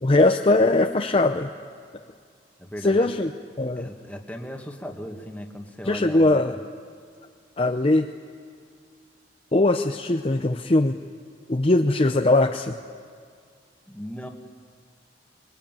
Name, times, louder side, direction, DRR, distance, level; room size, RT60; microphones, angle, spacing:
voice 1, 0.0-1.5 2.8-3.3 3.6-3.9 5.9-6.6 7.6-8.1 9.5-11.0 11.5-12.8, left 2 dB, 30° left, 5 dB, 0.7 m, -20 dB
voice 2, 2.6-3.1 3.8-6.6 13.9-14.3, equal, 10° left, 2 dB, 1.8 m, -37 dB
25.5 x 21.5 x 9.1 m, 2.2 s
head